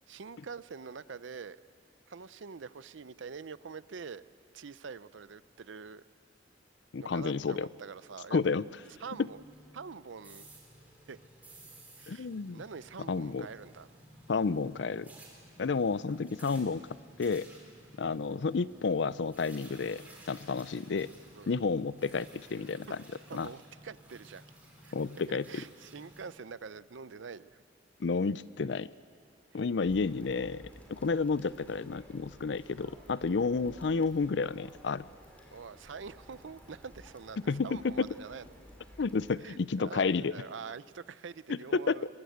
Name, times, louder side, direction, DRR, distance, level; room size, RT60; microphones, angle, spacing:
voice 1, 0.1-1.6 2.1-4.3 4.5-6.0 7.1-8.4 9.0-9.4 9.7-10.5 11.1-11.2 12.0-13.9 21.4-21.5 23.3-24.4 24.8-24.9 25.3-27.6 35.5-38.5 39.4-42.1, right 5 dB, 75° right, 16 dB, 0.6 m, -45 dB
voice 2, 6.9-7.7 8.3-8.7 12.1-12.6 13.1-13.5 14.3-15.1 15.6-17.5 18.0-21.1 21.5-23.0 23.3-23.5 24.9-25.5 28.0-28.9 29.5-30.6 30.9-35.1 37.5-38.1 39.0-40.3 41.5-42.0, left 4 dB, 65° left, 18 dB, 0.5 m, -31 dB
sound 1, 8.8-26.2, right 1 dB, 10° right, 4.1 m, -55 dB
sound 2, 29.8-39.3, equal, 10° left, 3.3 m, -54 dB
22.0 x 21.0 x 8.0 m, 2.3 s
head